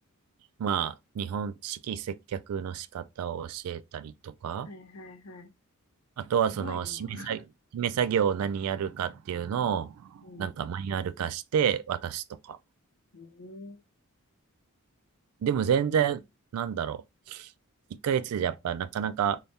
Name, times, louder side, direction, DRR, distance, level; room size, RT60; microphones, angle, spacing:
voice 1, 0.6-4.7 6.2-7.4 7.7-12.6 15.4-16.2 16.5-17.0 17.3-17.5 17.9-19.4, right 8 dB, 75° right, 0.3 m, -29 dB
voice 2, 4.6-5.5 6.5-7.4 10.2-10.5 13.1-13.8, left 2 dB, 85° left, 0.7 m, -45 dB
4.0 x 2.3 x 3.4 m
head